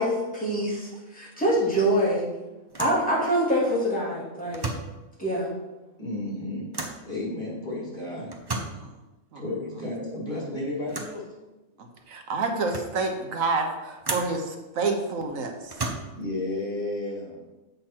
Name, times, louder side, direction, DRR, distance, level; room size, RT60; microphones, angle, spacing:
voice 1, 0.0-2.3 2.8-4.6 5.2-5.5, equal, 5° left, -7 dB, 2.4 m, -25 dB
sound 1, 1.4-1.7 2.0-2.1 2.7-3.1 4.4-5.0 6.7-7.1 8.3-8.8 10.9-11.2 12.0-12.1 12.5-13.0 14.0-14.4 15.6-16.3, right 2 dB, 25° right, 0.7 m, -34 dB
voice 2, 6.0-6.7 7.0-8.3 9.4-11.2 16.2-17.4, left 2 dB, 35° left, -4 dB, 2.7 m, -32 dB
voice 3, 11.8-15.8, right 3 dB, 80° right, 4 dB, 1.3 m, -29 dB
7.8 x 5.6 x 4.4 m, 1.1 s
omnidirectional pair, 1.4 m